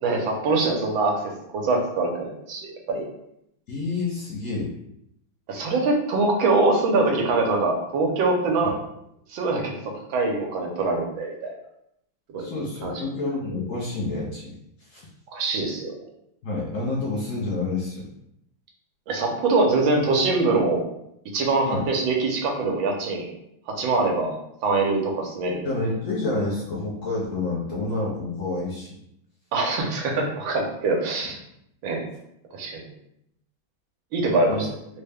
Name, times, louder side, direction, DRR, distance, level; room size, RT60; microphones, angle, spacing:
voice 1, 0.0-1.2 1.5-3.0 5.5-8.8 9.3-9.7 10.1-11.5 12.3-12.5 12.8-12.9 15.3-15.9 19.1-20.8 21.3-23.3 23.7-25.6 29.5-31.4 31.8-32.0 32.5-32.8 34.1-34.7, right 3 dB, 75° right, 0 dB, 1.5 m, -23 dB
voice 2, 3.7-4.7 8.6-8.7 12.4-14.6 14.9-15.1 16.4-18.1 21.6-21.9 25.6-29.0 34.5-34.6, left 3 dB, 80° left, -4 dB, 0.7 m, -28 dB
3.7 x 2.1 x 3.4 m, 0.77 s
omnidirectional pair, 2.2 m